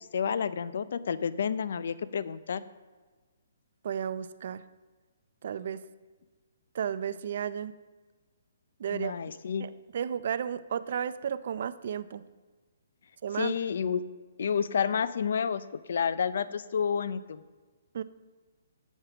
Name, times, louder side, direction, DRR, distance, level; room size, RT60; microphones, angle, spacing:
voice 1, 0.0-2.6 8.9-9.7 13.3-14.0 14.4-15.6 15.9-17.4, left 7 dB, 65° left, 15 dB, 0.5 m, -30 dB
voice 2, 3.8-4.6 5.4-5.8 6.7-7.7 8.8-9.1 9.6-12.2 13.2-13.6 17.9-18.0, right 8 dB, 55° right, 14 dB, 0.5 m, -33 dB
8.1 x 7.4 x 6.0 m, 1.4 s
hypercardioid pair, 150°, 0 cm